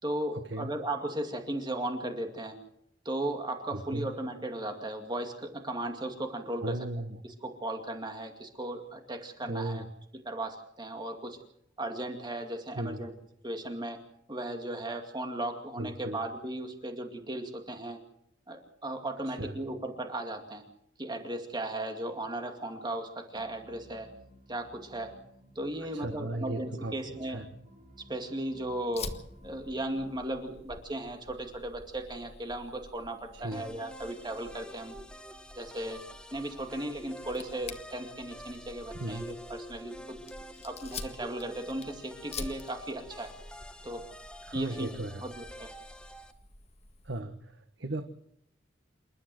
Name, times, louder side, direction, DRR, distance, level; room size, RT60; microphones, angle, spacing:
voice 1, 0.0-2.6 3.0-6.8 7.2-9.8 10.3-11.4 11.8-13.1 13.4-14.0 14.3-18.0 18.5-20.6 21.0-24.1 24.5-25.1 25.6-27.4 28.1-29.1 29.4-35.0 35.5-36.0 36.3-40.2 40.6-43.3 43.8-44.0 44.5-44.9 45.2-45.7, right 1 dB, 25° right, 4 dB, 2.3 m, -36 dB
voice 2, 3.7-4.1 6.6-7.2 9.5-9.9 12.7-13.0 15.8-16.2 19.2-19.6 25.9-27.5 33.3-33.7 38.9-39.5 44.4-45.2 47.0-48.0, right 1 dB, 75° right, 7 dB, 1.5 m, -37 dB
sound 1, 23.3-30.2, equal, 40° right, 6.0 m, -56 dB
Fire, 28.9-47.2, left 3 dB, 35° left, 1.8 m, -48 dB
sound 2, 33.5-46.3, equal, 5° left, 1.3 m, -48 dB
28.5 x 12.5 x 7.8 m, 0.72 s
head